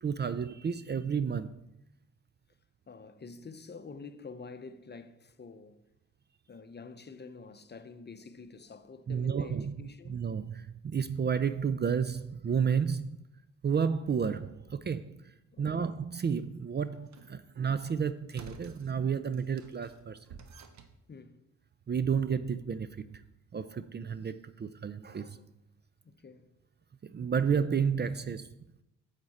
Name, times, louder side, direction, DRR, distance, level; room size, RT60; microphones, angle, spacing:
voice 1, 0.0-1.5 9.1-13.1 13.6-15.3 15.6-20.2 21.9-23.0 23.5-25.4 27.0-28.5, right 6 dB, 35° right, 0.5 m, -31 dB
voice 2, 2.9-5.8 6.5-10.2 15.5-15.9 21.1-21.4 26.0-26.5, left 4 dB, 35° left, 0.7 m, -48 dB
sound 1, 16.9-17.4 18.3-18.9 19.3-21.0, right 4 dB, 60° right, 0.9 m, -51 dB
7.9 x 7.5 x 4.2 m
supercardioid pair, 50°, 32 cm